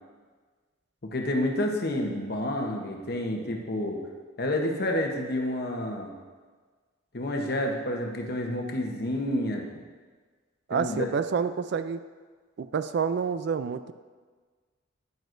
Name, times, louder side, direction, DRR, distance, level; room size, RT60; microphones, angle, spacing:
voice 1, 1.0-4.0 4.4-6.1 7.1-9.6 10.7-11.1, left 1 dB, 50° left, 2 dB, 0.9 m, -29 dB
voice 2, 10.7-12.0 12.6-13.9, right 6 dB, 55° right, 12 dB, 0.3 m, -28 dB
9.3 x 9.2 x 2.6 m, 1.5 s
head